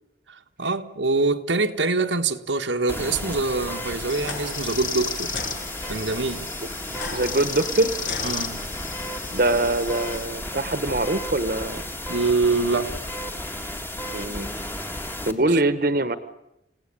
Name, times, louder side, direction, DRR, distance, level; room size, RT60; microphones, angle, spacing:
voice 1, 0.3-5.4 5.8-6.5 8.2-8.6 12.1-13.0, right 3 dB, 90° right, 1.5 m, -24 dB
sound 1, 2.9-15.3, left 1 dB, 10° left, 1.7 m, -33 dB
sound 2, 4.1-4.4 5.3-5.5 6.9-8.9, left 3 dB, 75° left, 6.6 m, -36 dB
sound 3, 4.1-10.2, left 6 dB, 45° left, 2.4 m, -35 dB
voice 2, 7.1-7.9 9.3-11.8 14.1-14.5 15.2-16.2, right 2 dB, 50° right, 1.3 m, -23 dB
29.0 x 17.5 x 9.9 m
head